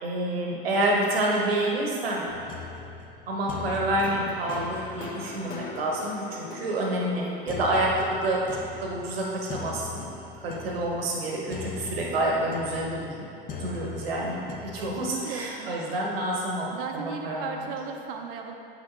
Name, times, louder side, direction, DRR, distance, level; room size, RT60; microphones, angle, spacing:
voice 1, 0.0-2.3 3.3-10.1 10.4-13.2 13.6-14.4 14.7-17.6, right 1 dB, 85° right, -2 dB, 1.1 m, -28 dB
sound 1, 2.3-15.2, left 5 dB, 30° left, 0.9 m, -40 dB
voice 2, 14.5-15.7 16.7-18.5, right 6 dB, 65° right, 2 dB, 0.7 m, -37 dB
7.6 x 6.0 x 2.9 m, 2.5 s
hypercardioid pair, 95°, 29 cm